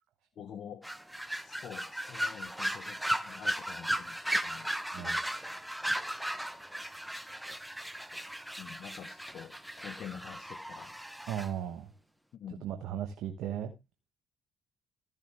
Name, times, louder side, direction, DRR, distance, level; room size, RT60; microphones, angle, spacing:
voice 1, 0.4-0.8 1.4-4.2 4.4-4.7 5.0-5.2 8.1-8.2 8.6-10.9 12.3-12.6, left 8 dB, 60° left, 1.0 m, -47 dB
sound 1, 0.8-11.5, equal, 5° right, 1.1 m, -36 dB
voice 2, 11.3-11.9 12.5-13.7, right 10 dB, 70° right, 1.2 m, -37 dB
14.5 x 7.4 x 3.5 m
hypercardioid pair, 55°, 0 cm